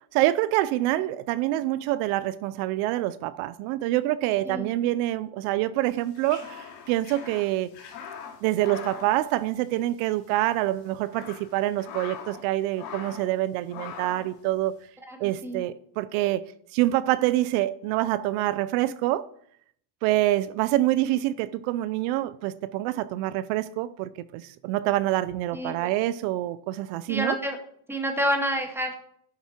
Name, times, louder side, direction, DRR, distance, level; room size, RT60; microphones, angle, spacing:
voice 1, 0.1-7.7 8.4-14.8 15.2-16.4 16.7-19.3 20.0-27.4, right 15 dB, 80° right, 0.7 m, -26 dB
sound 1, 5.9-10.0 10.3-10.4 10.9-12.5 12.7-13.3 13.7-14.3, left 7 dB, 90° left, 2.8 m, -42 dB
voice 2, 27.1-27.6 27.9-28.9, equal, 5° right, 1.8 m, -28 dB
10.5 x 7.2 x 4.4 m
cardioid pair, 125°, 48 cm